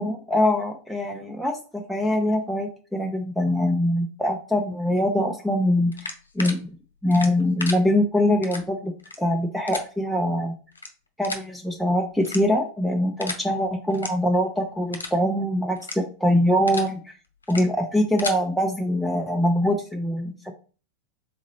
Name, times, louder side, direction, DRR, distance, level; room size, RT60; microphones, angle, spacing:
voice 1, 0.0-6.7 7.0-10.5 11.2-17.1 17.5-20.5, left 1 dB, ahead, 2 dB, 0.5 m, -23 dB
sound 1, 5.9-6.5 7.1-7.8 8.4-8.6 9.0-9.2 9.7-9.8 10.7-10.9 11.2-11.4 12.2-12.7 13.2-13.4 13.9-14.1 14.4-14.6 14.9-15.1 15.7-16.0 16.4-16.9 17.4-17.6 18.0-18.4, left 3 dB, 75° left, 0.7 m, -33 dB
3.8 x 3.6 x 3.2 m, 0.37 s
figure-of-eight pair, 90°, 0 cm